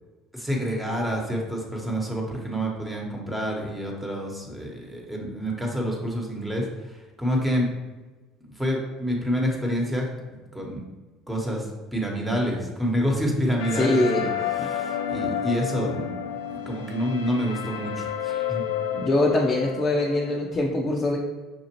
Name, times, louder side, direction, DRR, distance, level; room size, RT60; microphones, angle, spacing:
voice 1, 0.3-7.7 8.4-10.8 11.3-18.6, equal, 10° right, -1 dB, 1.2 m, -28 dB
sound 1, 13.6-20.4, left 9 dB, 85° left, 0.3 m, -31 dB
voice 2, 13.7-14.2 18.9-21.2, left 2 dB, 30° left, -1 dB, 0.6 m, -23 dB
5.9 x 2.4 x 3.0 m, 1.2 s
hypercardioid pair, 75°, 0 cm